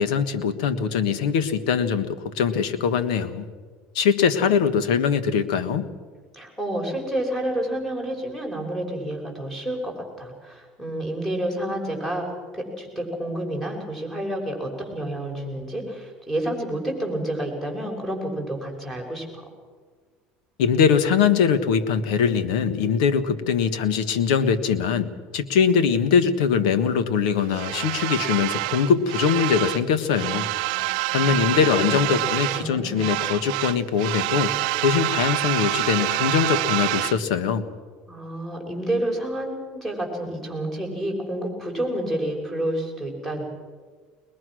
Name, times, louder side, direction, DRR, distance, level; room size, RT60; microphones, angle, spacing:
voice 1, 0.0-3.5 3.9-5.9 20.6-30.5 31.1-34.5 34.8-37.7, left 7 dB, 90° left, 10 dB, 1.5 m, -22 dB
voice 2, 6.3-12.2 12.5-19.4 30.7-32.0 32.4-33.2 38.1-43.4, right 1 dB, 5° left, 1 dB, 6.5 m, -29 dB
sound 1, 27.5-29.9 30.1-32.7 33.0-37.2, right 22 dB, 85° right, 0.5 m, -26 dB
22.0 x 21.5 x 6.4 m, 1.5 s
supercardioid pair, 110°, 4 cm